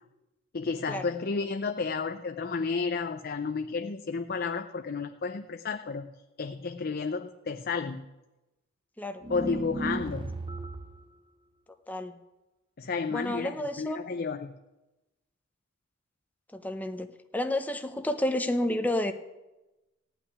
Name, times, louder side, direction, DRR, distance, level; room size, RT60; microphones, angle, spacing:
voice 1, 0.5-6.1 6.4-8.1 9.3-10.3 12.8-14.5, left 4 dB, 50° left, 7 dB, 0.6 m, -32 dB
sound 1, 9.2-11.0, right 2 dB, 25° right, 0.8 m, -35 dB
voice 2, 11.9-12.2 13.1-14.0 16.5-17.1 17.3-19.1, left 1 dB, 10° left, 7 dB, 0.7 m, -30 dB
16.0 x 5.7 x 9.7 m, 1.0 s
head